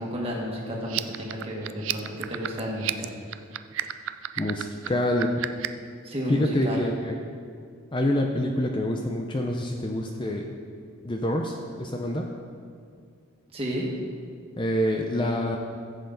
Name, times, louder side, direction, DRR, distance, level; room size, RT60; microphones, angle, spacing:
voice 1, 0.0-3.1 6.0-6.8 13.5-13.9, equal, 25° right, -3 dB, 1.7 m, -32 dB
sound 1, 0.8-5.9, right 12 dB, 65° right, 0.4 m, -32 dB
voice 2, 4.4-5.5 6.3-7.2 7.9-10.6 11.0-12.3 14.6-15.6, left 1 dB, 25° left, 2 dB, 0.6 m, -26 dB
14.5 x 7.7 x 3.9 m, 2.2 s
head